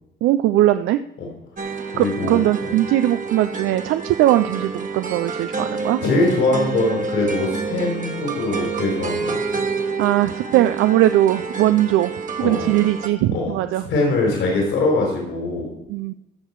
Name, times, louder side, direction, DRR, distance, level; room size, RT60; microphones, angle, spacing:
voice 1, 0.2-1.0 2.0-6.0 10.0-12.1 12.4-13.8 15.9-16.1, right 14 dB, 85° right, 11 dB, 0.4 m, -19 dB
sound 1, 1.6-13.1, right 4 dB, 40° right, 1.4 m, -28 dB
voice 2, 1.9-2.4 6.0-9.6 12.4-12.7 13.3-13.5 13.9-15.7, left 2 dB, 75° left, -2 dB, 4.0 m, -22 dB
14.5 x 6.7 x 4.6 m, 0.90 s
cardioid pair, 90°, 20 cm